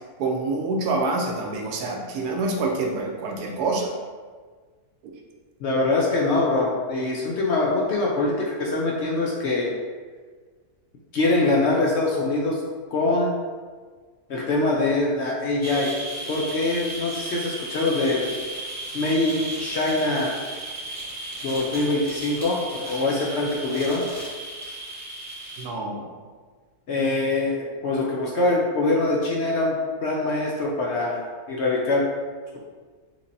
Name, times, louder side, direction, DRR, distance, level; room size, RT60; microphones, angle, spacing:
voice 1, 0.2-3.9 25.6-26.1, right 3 dB, 90° right, 1 dB, 1.2 m, -26 dB
voice 2, 5.6-9.7 11.1-12.6 12.9-13.3 14.3-15.9 16.3-18.2 18.9-20.3 21.4-24.0 26.9-32.1, left 2 dB, 60° left, -3 dB, 0.7 m, -23 dB
sound 1, 15.6-25.7, right 2 dB, 10° right, 1.4 m, -35 dB
6.0 x 2.8 x 2.6 m, 1.5 s
omnidirectional pair, 1.6 m